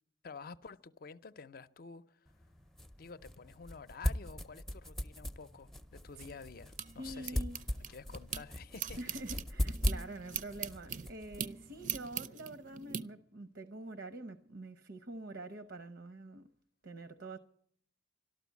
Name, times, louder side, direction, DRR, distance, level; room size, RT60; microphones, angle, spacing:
voice 1, 0.2-2.3 3.0-7.4 7.7-9.0, left 5 dB, 55° left, 0.6 m, -50 dB
sound 1, 2.3-12.2, left 1 dB, ahead, 0.5 m, -40 dB
sound 2, 6.1-8.4 8.7-13.0, right 8 dB, 45° right, 0.5 m, -42 dB
voice 2, 7.0-7.6 9.0-16.5 16.8-17.4, right 2 dB, 75° right, 0.8 m, -46 dB
13.0 x 12.5 x 8.2 m
head